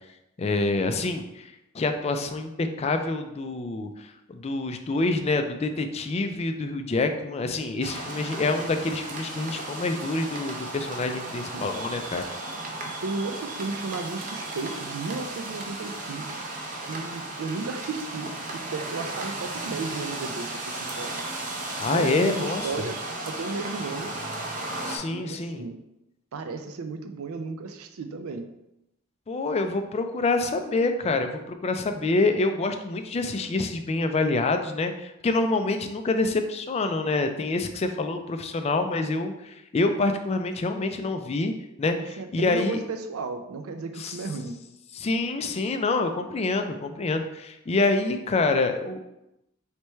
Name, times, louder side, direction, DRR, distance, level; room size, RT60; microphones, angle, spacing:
voice 1, 0.4-1.4 1.7-12.2 21.8-22.9 24.9-25.6 29.3-41.5 41.8-42.8 44.0-44.2 44.9-49.0, left 3 dB, 30° left, 7 dB, 0.3 m, -26 dB
sound 1, 7.8-25.0, right 2 dB, 40° right, 0.6 m, -35 dB
voice 2, 12.9-16.4 16.9-21.2 21.9-23.0 23.3-24.2 25.1-25.8 26.3-28.5 42.0-44.6, right 3 dB, 85° right, 7 dB, 0.4 m, -34 dB
3.3 x 3.1 x 4.3 m, 0.90 s
head